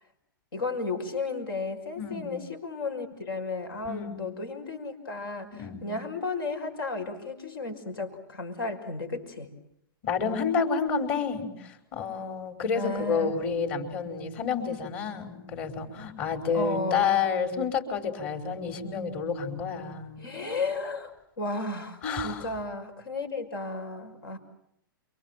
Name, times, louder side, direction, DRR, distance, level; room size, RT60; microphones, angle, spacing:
voice 1, 0.5-9.5 12.7-13.3 16.5-17.2 20.2-24.4, left 3 dB, 80° left, 6 dB, 6.0 m, -34 dB
voice 2, 2.0-2.3 3.8-4.3 5.6-5.9 10.0-20.2 22.0-22.5, left 6 dB, 45° left, 6 dB, 5.2 m, -29 dB
29.0 x 24.5 x 7.7 m, 0.75 s
hypercardioid pair, 130°, 12 cm